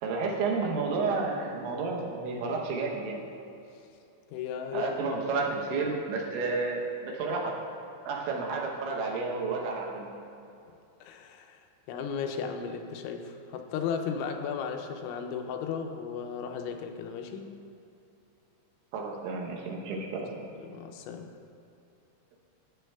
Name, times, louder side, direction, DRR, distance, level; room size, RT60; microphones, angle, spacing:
voice 1, 0.0-3.2 4.7-7.5 8.1-10.1 18.9-20.4, right 4 dB, 80° right, -1 dB, 3.2 m, -31 dB
voice 2, 4.3-6.0 11.0-11.6 11.9-17.5 20.6-21.3, left 6 dB, 85° left, 5 dB, 2.9 m, -35 dB
13.5 x 8.2 x 2.3 m, 2.7 s
omnidirectional pair, 5.4 m